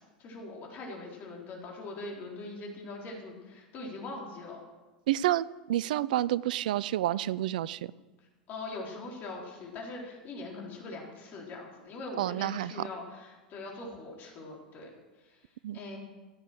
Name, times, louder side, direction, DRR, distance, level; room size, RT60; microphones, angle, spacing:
voice 1, 0.2-4.6 8.5-14.9 15.3-15.4 15.7-16.0, left 2 dB, 40° left, -1 dB, 4.1 m, -42 dB
voice 2, 5.1-7.9 12.2-12.7 15.6-15.8, right 13 dB, 65° right, 21 dB, 0.4 m, -29 dB
16.0 x 8.2 x 7.8 m, 1.2 s
figure-of-eight pair, 85°, 5 cm